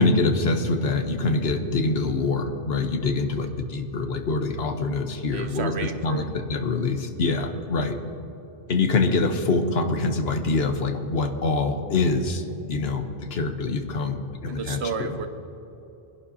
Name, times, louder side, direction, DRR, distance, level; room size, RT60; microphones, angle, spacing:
voice 1, 0.0-5.7 6.0-8.0 8.7-12.4 12.7-15.1, left 3 dB, 75° left, 6 dB, 1.2 m, -25 dB
voice 2, 5.3-6.2 14.5-15.3, right 5 dB, 90° right, 8 dB, 1.1 m, -31 dB
22.5 x 11.0 x 2.8 m, 2.9 s
omnidirectional pair, 1.1 m